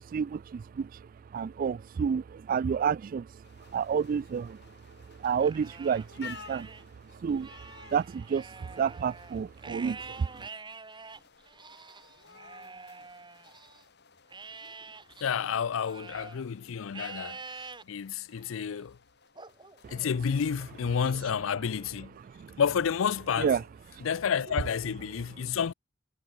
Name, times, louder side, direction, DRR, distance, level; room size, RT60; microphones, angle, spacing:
voice 1, 0.0-3.4 3.7-4.6 5.1-6.8 7.1-10.5 19.8-20.1 22.3-22.6 23.4-23.6 23.9-24.1, right 7 dB, 45° right, 0.3 m, -30 dB
sound 1, 3.4-21.0, left 7 dB, 60° left, 5.0 m, -55 dB
Livestock farm animals working animals, 5.2-6.8 7.3-13.8 14.3-16.4 16.9-17.8 18.4-18.8 19.4-20.4, right 4 dB, 25° right, 4.9 m, -47 dB
voice 2, 15.2-19.0 19.9-22.1 22.6-23.6 24.0-25.7, left 7 dB, 85° left, 0.5 m, -30 dB
head